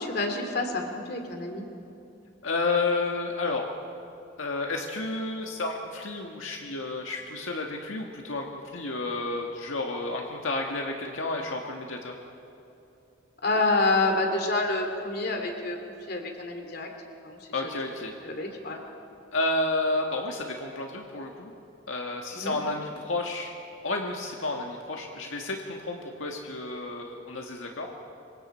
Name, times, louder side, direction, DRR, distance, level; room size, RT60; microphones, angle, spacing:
voice 1, 0.0-1.6 13.4-15.8 16.1-16.9 17.2-17.7 18.2-18.8 22.3-22.6, left 2 dB, 50° left, 4 dB, 2.7 m, -28 dB
voice 2, 2.4-3.7 4.4-8.5 8.7-12.1 17.5-18.1 19.3-21.5 21.9-23.5 23.8-27.9, left 2 dB, 80° left, 1 dB, 1.8 m, -31 dB
26.5 x 24.0 x 4.5 m, 2.8 s
head